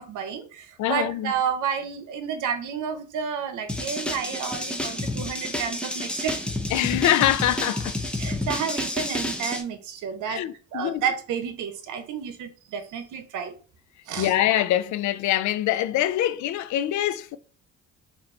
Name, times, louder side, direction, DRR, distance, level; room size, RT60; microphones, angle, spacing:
voice 1, 0.0-6.4 8.2-10.4 10.7-13.5 14.1-14.3, right 7 dB, 85° right, 0.8 m, -30 dB
voice 2, 0.8-1.3 6.7-7.9 10.3-11.0 14.2-17.4, left 12 dB, 70° left, 0.5 m, -24 dB
sound 1, 3.7-9.6, left 1 dB, 5° left, 0.7 m, -30 dB
4.1 x 2.7 x 4.3 m
cardioid pair, 90°, 30 cm